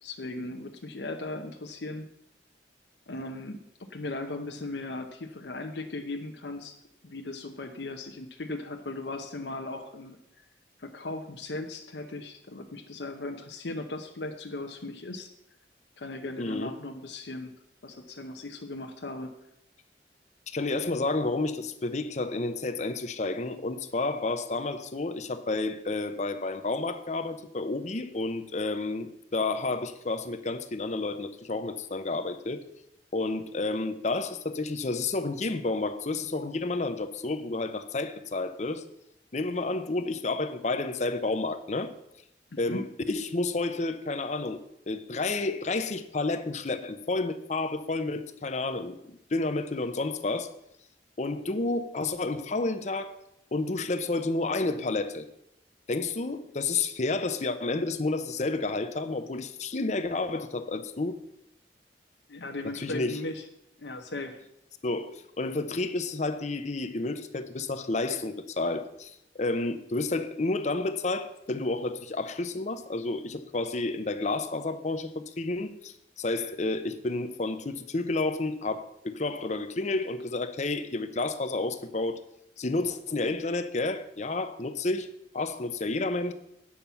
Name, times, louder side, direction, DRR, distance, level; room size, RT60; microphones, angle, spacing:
voice 1, 0.0-2.1 3.1-6.7 7.0-10.2 10.8-15.3 16.0-17.5 17.8-19.3 42.5-42.8 62.3-63.4 63.8-64.4, left 2 dB, 75° left, 0.8 m, -37 dB
voice 2, 16.4-16.8 20.5-32.6 33.1-38.8 39.3-41.9 42.6-50.5 51.2-53.1 53.5-55.3 55.9-61.2 62.7-63.2 64.8-82.2 82.6-85.1 85.3-86.3, left 3 dB, 40° left, 0.7 m, -30 dB
8.7 x 5.9 x 6.9 m
head